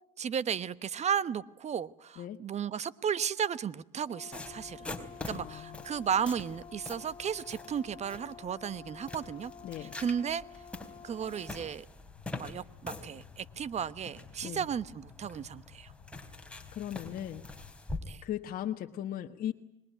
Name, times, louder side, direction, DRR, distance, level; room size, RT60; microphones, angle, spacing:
voice 1, 0.2-4.9 5.3-9.5 9.8-10.4 11.0-11.8 12.3-15.9 18.1-18.2, right 8 dB, 35° right, 17 dB, 1.1 m, -34 dB
Brass instrument, 4.0-11.8, left 7 dB, 25° left, 0.9 m, -50 dB
sound 1, 4.3-18.0, left 2 dB, 5° left, 3.9 m, -45 dB
voice 2, 5.3-5.8 9.6-10.0 14.4-14.7 16.7-17.4 18.2-19.5, left 11 dB, 50° left, 4 dB, 1.4 m, -37 dB
sound 2, 12.0-17.7, left 12 dB, 75° left, 2.0 m, -56 dB
26.0 x 21.5 x 9.4 m, 0.87 s
supercardioid pair, 90°, 18 cm